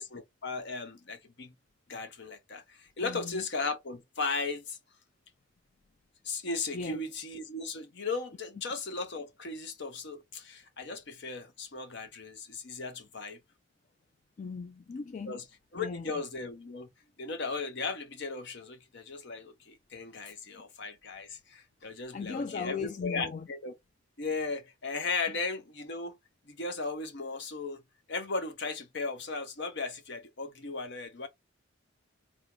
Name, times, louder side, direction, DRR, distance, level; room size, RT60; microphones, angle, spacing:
voice 1, 0.0-1.5 1.9-4.8 6.2-13.4 15.3-15.4 15.7-16.9 17.2-23.7 24.2-26.2 26.5-27.8 28.1-31.3, left 4 dB, 60° left, 0.9 m, -36 dB
voice 2, 3.0-3.4 6.7-7.0 14.4-15.4 15.7-16.1 20.2-20.3 21.9-23.5, left 5 dB, 40° left, 0.3 m, -38 dB
4.5 x 2.1 x 3.8 m
head